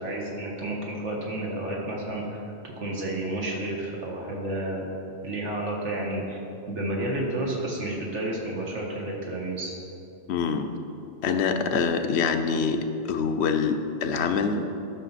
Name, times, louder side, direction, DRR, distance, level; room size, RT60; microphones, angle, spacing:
voice 1, 0.0-4.9 5.2-6.4 6.7-9.7, right 1 dB, 85° right, -2 dB, 1.8 m, -31 dB
voice 2, 10.3-10.7 11.2-14.6, left 5 dB, 75° left, 7 dB, 0.9 m, -25 dB
12.0 x 5.8 x 4.1 m, 2.7 s
omnidirectional pair, 1.2 m